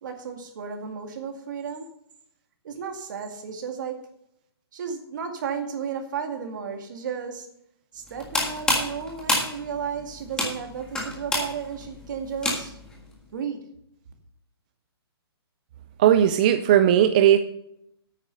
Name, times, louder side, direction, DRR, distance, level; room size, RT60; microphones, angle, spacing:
voice 1, 0.0-1.9 2.6-4.0 4.7-7.5 7.9-12.8 13.3-13.6, right 6 dB, 50° right, 4 dB, 2.2 m, -33 dB
sound 1, 8.1-12.9, left 2 dB, 5° left, 1.6 m, -28 dB
voice 2, 16.0-17.4, right 10 dB, 20° right, 9 dB, 0.3 m, -17 dB
10.0 x 9.0 x 5.4 m, 0.74 s
hypercardioid pair, 170°, 13 cm